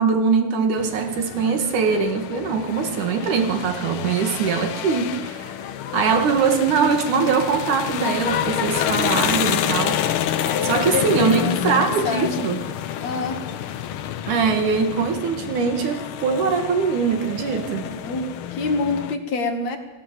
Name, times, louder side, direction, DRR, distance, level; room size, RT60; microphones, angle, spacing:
voice 1, 0.0-5.5 5.9-10.0 10.6-12.6 14.3-17.9, right 5 dB, 70° right, 5 dB, 3.3 m, -22 dB
sound 1, 0.8-19.2, left 10 dB, 80° left, 1.2 m, -28 dB
voice 2, 10.4-12.4 13.0-13.4 17.9-19.8, left 4 dB, 60° left, 4 dB, 3.2 m, -27 dB
28.5 x 17.0 x 7.6 m, 1.2 s
omnidirectional pair, 3.7 m